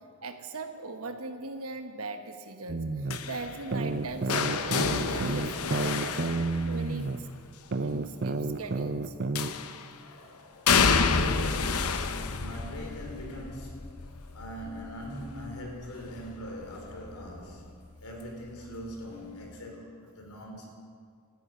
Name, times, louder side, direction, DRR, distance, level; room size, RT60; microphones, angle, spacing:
voice 1, 0.2-6.3 6.6-7.2 7.7-9.1, right 3 dB, 70° right, 7 dB, 1.4 m, -39 dB
sound 1, 2.7-3.2 3.7-7.2 7.7-9.5, right 3 dB, 50° right, 0.7 m, -30 dB
sound 2, 3.1-7.1 9.3-9.9 10.7-16.5 16.8-17.2 18.5-18.6, left 5 dB, 75° left, 0.8 m, -29 dB
voice 2, 3.2-3.9 6.0-6.5 8.5-8.9 10.0-20.7, left 1 dB, 90° left, 1 dB, 3.8 m, -43 dB
14.0 x 11.0 x 9.0 m, 2.1 s
head